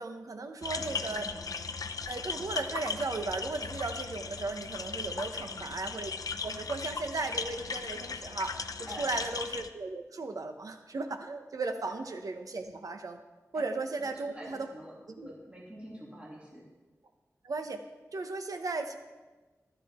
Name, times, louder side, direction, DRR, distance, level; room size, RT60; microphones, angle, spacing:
voice 1, 0.0-1.3 2.1-6.1 6.4-13.2 13.5-14.7 15.1-15.3 17.4-17.8 18.1-19.0, right 3 dB, 75° right, 6 dB, 1.0 m, -36 dB
sound 1, 0.6-9.7, left 5 dB, 80° left, 0.6 m, -37 dB
voice 2, 0.7-1.5 5.4-5.7 8.9-9.2 13.5-13.6 14.0-16.7, equal, 20° right, -4 dB, 2.9 m, -47 dB
15.0 x 12.5 x 3.7 m, 1.2 s
wide cardioid pair, 85°, 6 cm